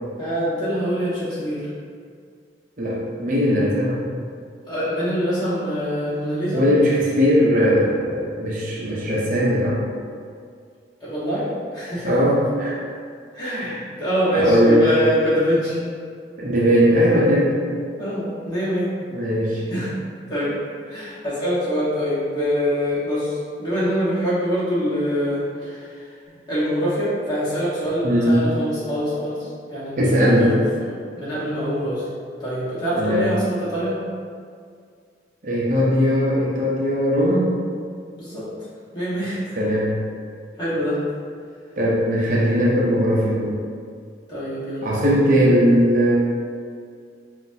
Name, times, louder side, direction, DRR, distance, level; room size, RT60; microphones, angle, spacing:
voice 1, 0.2-1.7 4.7-6.6 8.9-9.0 11.0-12.1 13.3-15.8 18.0-18.9 19.7-19.9 20.3-20.5 20.9-26.2 26.5-30.6 30.9-32.0 32.4-34.0 38.2-38.5 38.9-39.6 40.6-41.0 44.3-45.1, equal, 25° left, -11 dB, 1.3 m, -24 dB
voice 2, 2.8-4.1 6.5-9.8 12.0-12.8 13.5-13.8 14.3-14.9 16.4-17.5 19.1-19.6 28.0-28.4 30.0-30.5 33.0-33.3 35.4-37.6 39.6-40.0 41.8-43.6 44.8-46.1, equal, 45° right, -5 dB, 0.6 m, -19 dB
5.7 x 2.5 x 2.7 m, 2.1 s
head